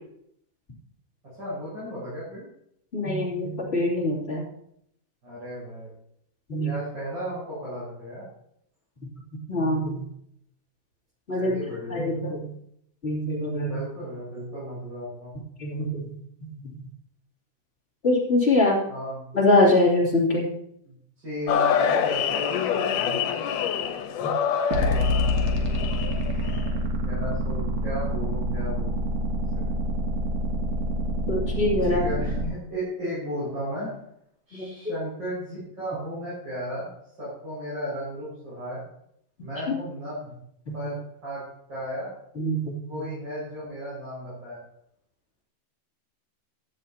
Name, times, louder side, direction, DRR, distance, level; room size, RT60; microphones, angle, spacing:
voice 1, 1.4-2.5 5.2-5.9 6.6-8.2 11.4-12.2 13.6-15.3 18.9-19.2 20.8-20.9 21.2-23.2 24.7-25.3 26.4-29.2 31.8-33.9 34.5-36.9 37.2-38.8 39.4-40.3 40.7-42.1 42.9-44.6, equal, 30° right, -10 dB, 6.5 m, -35 dB
voice 2, 2.9-4.4 6.5-6.7 9.5-10.0 11.3-11.5 11.9-12.5 13.0-13.8 15.6-16.1 16.4-16.5 18.0-18.8 19.3-20.5 24.2-24.3 31.3-32.0 34.5-34.7 40.7-40.9 42.4-43.0, left 2 dB, 20° left, -5 dB, 2.8 m, -23 dB
sound 1, 21.5-26.6, left 8 dB, 85° left, 2.5 m, -26 dB
sound 2, 24.7-32.5, equal, 55° right, 2.6 m, -26 dB
15.0 x 11.0 x 2.9 m, 0.73 s
omnidirectional pair, 3.7 m